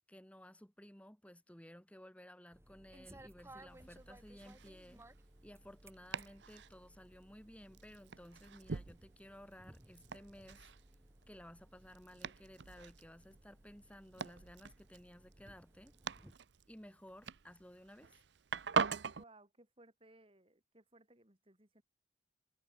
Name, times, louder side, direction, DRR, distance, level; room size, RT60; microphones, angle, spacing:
voice 1, 0.0-5.0 5.4-10.7 11.3-15.9 16.7-18.2, equal, 5° left, 2.6 m, -56 dB
sound 1, 2.5-16.3, right 1 dB, 15° right, 1.2 m, -61 dB
Domestic sounds home sounds, 3.7-19.2, right 5 dB, 70° right, 0.7 m, -44 dB
voice 2, 19.1-21.8, right 2 dB, 30° right, 5.2 m, -63 dB
head